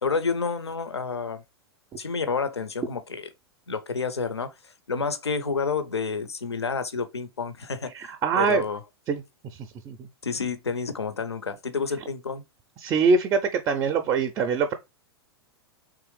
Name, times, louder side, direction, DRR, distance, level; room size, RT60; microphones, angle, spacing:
voice 1, 0.0-1.4 2.0-3.3 3.7-7.9 8.4-8.8 10.2-12.4, left 5 dB, 80° left, 0.5 m, -29 dB
voice 2, 7.9-8.6 9.1-9.2 9.9-10.1 12.8-14.7, right 5 dB, 25° right, 0.4 m, -23 dB
3.5 x 2.9 x 3.0 m
figure-of-eight pair, 95°, 14 cm